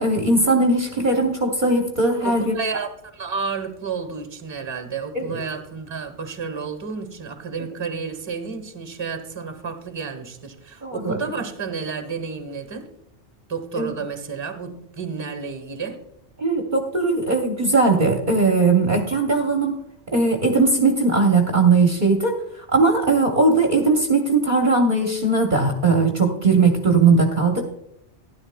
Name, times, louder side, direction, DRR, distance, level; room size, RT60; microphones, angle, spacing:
voice 1, 0.0-2.5 5.1-5.4 10.8-11.2 13.8-13.9 16.4-19.8 20.1-22.3 22.7-27.6, right 3 dB, 45° right, 2 dB, 1.0 m, -19 dB
voice 2, 2.2-12.9 13.5-16.0, right 5 dB, 25° right, 7 dB, 1.1 m, -31 dB
12.5 x 11.0 x 2.2 m, 0.77 s
omnidirectional pair, 1.2 m